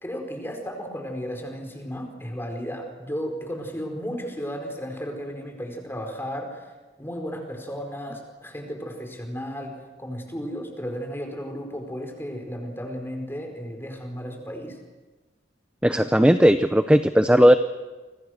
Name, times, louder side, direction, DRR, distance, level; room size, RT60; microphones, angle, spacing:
voice 1, 0.0-6.7 7.0-14.8, equal, 15° left, 3 dB, 4.8 m, -34 dB
voice 2, 15.8-17.6, equal, 5° right, 9 dB, 0.8 m, -17 dB
29.0 x 25.0 x 6.6 m, 1.2 s
head